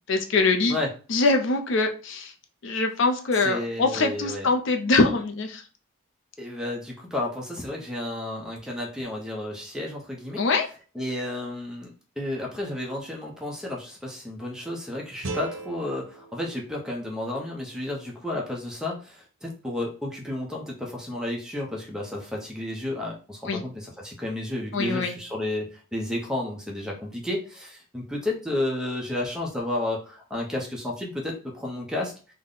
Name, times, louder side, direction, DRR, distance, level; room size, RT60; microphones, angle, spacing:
voice 1, 0.1-0.8 1.1-2.3 2.6-5.6 10.4-10.7 23.5-23.6 24.7-25.1, left 3 dB, 65° left, 4 dB, 0.5 m, -23 dB
voice 2, 3.4-4.5 6.4-10.4 10.9-32.1, left 1 dB, 5° right, -1 dB, 0.6 m, -32 dB
sound 1, 15.2-18.3, right 2 dB, 75° right, 0.8 m, -40 dB
3.5 x 2.1 x 3.8 m, 0.37 s
head